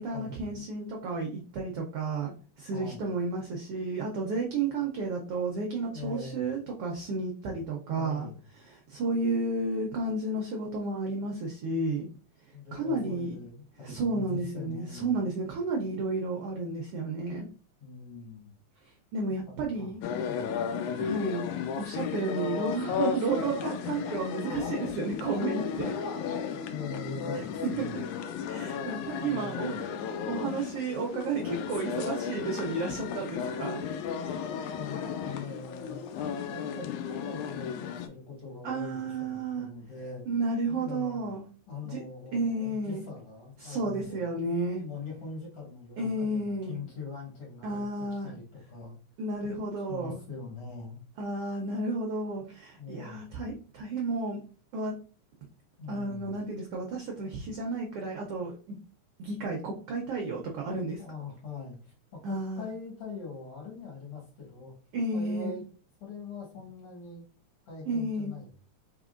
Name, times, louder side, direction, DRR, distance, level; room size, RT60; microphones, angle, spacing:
voice 1, 0.0-8.3 8.7-12.1 12.7-13.4 13.8-17.5 19.1-20.0 21.0-21.5 21.8-25.9 27.3-27.4 27.8-28.0 28.5-29.8 30.3-33.8 38.6-39.7 40.3-41.4 41.8-42.0 42.3-43.0 43.6-44.8 46.0-46.8 47.6-48.3 49.2-50.2 51.2-54.4 54.7-54.9 55.9-58.8 59.2-61.0 62.2-62.7 64.9-65.6 67.9-68.3, right 3 dB, 80° right, 0 dB, 1.3 m, -32 dB
voice 2, 2.7-3.1 5.8-6.5 7.9-8.4 12.5-15.2 17.8-18.5 19.3-19.9 20.2-21.2 26.5-28.1 29.1-29.8 34.8-36.0 36.5-40.2 40.7-41.4 41.7-44.4 44.8-49.0 49.9-51.0 52.8-53.2 55.8-56.3 61.0-64.7 65.1-65.6 66.0-67.2 67.7-68.5, left 4 dB, 55° left, -2 dB, 2.1 m, -42 dB
sound 1, 20.0-38.1, left 7 dB, 80° left, 2.0 m, -34 dB
4.7 x 3.4 x 2.5 m, 0.38 s
omnidirectional pair, 3.5 m